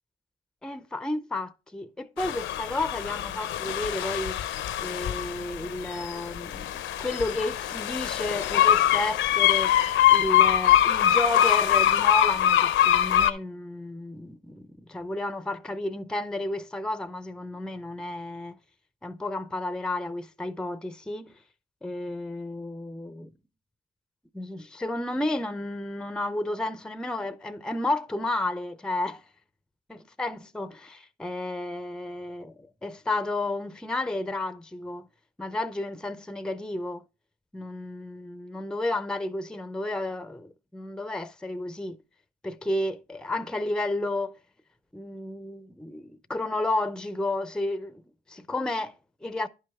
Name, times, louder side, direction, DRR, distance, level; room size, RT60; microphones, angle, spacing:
voice 1, 0.6-4.4 4.8-6.7 7.0-9.8 10.1-18.6 19.0-21.3 21.8-23.3 24.3-29.2 29.9-35.1 35.4-37.0 37.5-42.0 42.4-44.4 44.9-48.0 48.3-49.5, left 2 dB, 5° left, 0.4 m, -32 dB
sound 1, 2.2-13.3, left 11 dB, 75° left, 0.6 m, -23 dB
10.5 x 5.4 x 3.4 m
cardioid pair, 90°, 20 cm